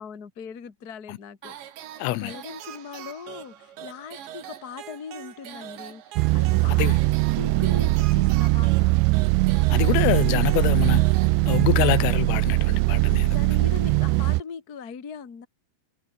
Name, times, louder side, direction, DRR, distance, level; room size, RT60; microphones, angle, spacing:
voice 1, 0.0-1.6 2.0-7.1 7.4-9.0 13.3-15.5, left 6 dB, 45° left, 1.2 m, -40 dB
sound 1, 1.4-12.5, right 11 dB, 65° right, 4.3 m, -42 dB
voice 2, 2.0-2.3 6.8-7.0 9.7-11.0 11.5-13.4, left 17 dB, 85° left, 3.6 m, -25 dB
sound 2, 6.2-14.4, right 21 dB, 85° right, 2.6 m, -21 dB
omnidirectional pair, 5.9 m